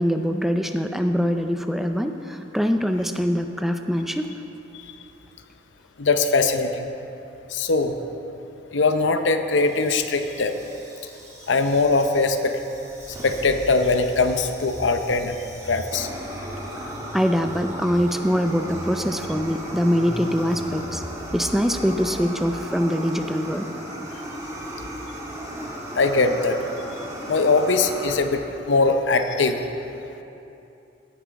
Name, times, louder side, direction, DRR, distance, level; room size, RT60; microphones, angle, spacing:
voice 1, 0.0-4.3 17.1-21.0 21.3-23.7, equal, ahead, 6 dB, 0.4 m, -23 dB
voice 2, 6.0-6.9 7.5-7.9 8.7-10.6 11.5-12.6 13.2-15.4 15.6-16.1 25.9-26.6 27.3-29.6, left 3 dB, 80° left, 7 dB, 0.7 m, -21 dB
Fire, 9.5-28.1, right 1 dB, 15° right, 1.4 m, -37 dB
sound 1, 12.9-22.5, equal, 60° right, 2.5 m, -40 dB
17.5 x 6.1 x 4.7 m, 2.9 s
head